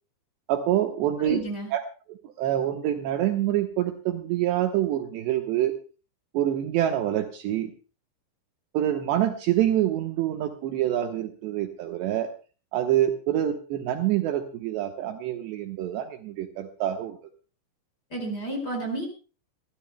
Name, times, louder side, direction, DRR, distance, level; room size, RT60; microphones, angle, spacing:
voice 1, 0.5-1.4 1.7-1.8 2.1-5.7 6.3-7.7 8.7-12.3 12.7-17.2, right 12 dB, 70° right, 6 dB, 3.0 m, -26 dB
voice 2, 1.2-1.7 18.1-19.1, right 1 dB, 20° left, 3 dB, 4.6 m, -31 dB
27.5 x 12.5 x 2.2 m, 0.35 s
omnidirectional pair, 5.6 m